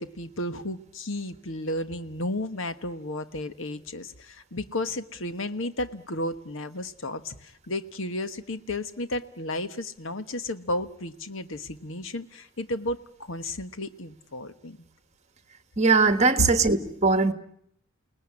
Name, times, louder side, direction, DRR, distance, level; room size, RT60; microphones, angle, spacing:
voice 1, 0.0-14.8 16.4-16.5, left 1 dB, 65° left, 11 dB, 1.3 m, -33 dB
voice 2, 15.8-17.3, right 4 dB, 30° right, 10 dB, 1.6 m, -20 dB
29.0 x 19.0 x 9.9 m, 0.72 s
head